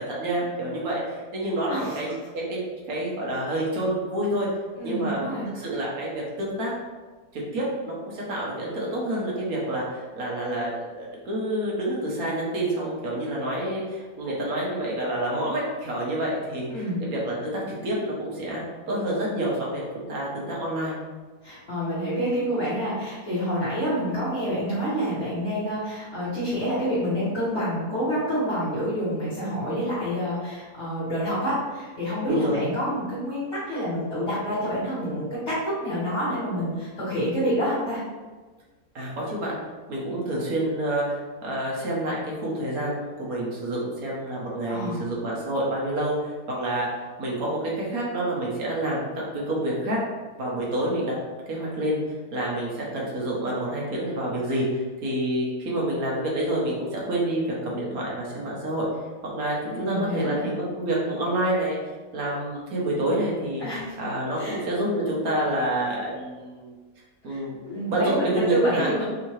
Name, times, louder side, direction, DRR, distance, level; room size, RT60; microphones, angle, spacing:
voice 1, 0.0-2.6 2.9-4.5 4.8-5.2 5.5-6.7 7.3-20.9 32.3-32.6 38.9-39.6 39.9-46.9 47.2-50.0 50.4-51.1 51.5-52.0 52.3-58.9 59.3-61.8 62.1-63.6 64.0-66.7 67.2-67.6 67.9-69.0, right 1 dB, 70° right, -4 dB, 1.4 m, -28 dB
voice 2, 1.7-2.0 4.8-5.5 16.7-17.0 21.4-38.0 44.7-45.0 59.7-60.5 63.6-63.9 64.4-64.6 67.3-69.0, equal, 45° left, -13 dB, 1.6 m, -28 dB
3.7 x 2.7 x 3.1 m, 1.3 s
omnidirectional pair, 1.7 m